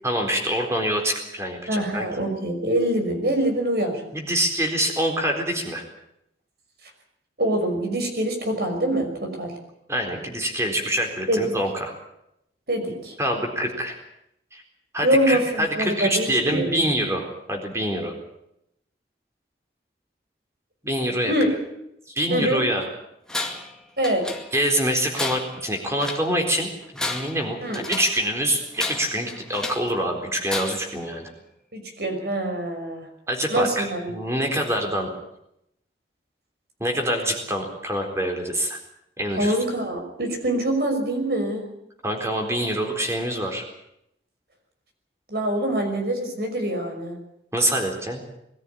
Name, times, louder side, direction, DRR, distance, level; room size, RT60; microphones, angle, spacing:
voice 1, 0.0-2.1 4.1-5.8 9.9-11.9 13.2-14.0 14.5-14.6 14.9-18.1 20.8-21.3 22.1-22.9 24.5-26.7 26.9-27.6 27.9-31.3 33.3-35.1 36.8-38.8 39.2-39.6 42.0-43.6 47.5-48.2, equal, 15° right, 3 dB, 4.1 m, -25 dB
voice 2, 1.7-4.0 7.4-9.5 11.3-11.5 12.7-13.1 15.0-16.8 21.3-21.5 22.3-22.6 24.0-24.3 27.6-27.8 31.7-33.1 33.5-34.1 39.3-41.6 45.3-47.2, right 1 dB, 60° right, 4 dB, 5.7 m, -24 dB
Tools, 23.3-23.7 24.0-24.7 25.1-26.3 26.8-28.2 28.7-29.9 30.5-31.0, left 2 dB, 5° left, 2.1 m, -32 dB
21.5 x 13.5 x 10.0 m, 0.80 s
head